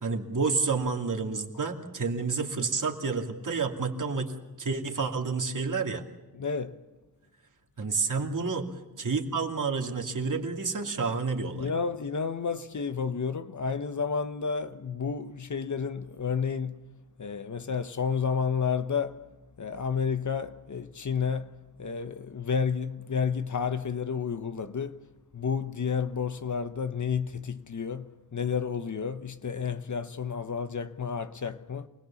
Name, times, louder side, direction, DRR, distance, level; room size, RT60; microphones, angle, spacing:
voice 1, 0.0-4.3 4.6-6.0 7.8-8.7 9.0-11.7, right 4 dB, 60° right, 2.8 m, -29 dB
voice 2, 6.3-6.8 11.5-16.8 17.2-19.3 19.6-25.0 25.3-31.9, left 6 dB, 55° left, 1.2 m, -31 dB
28.0 x 20.5 x 7.3 m
wide cardioid pair, 130°, 36 cm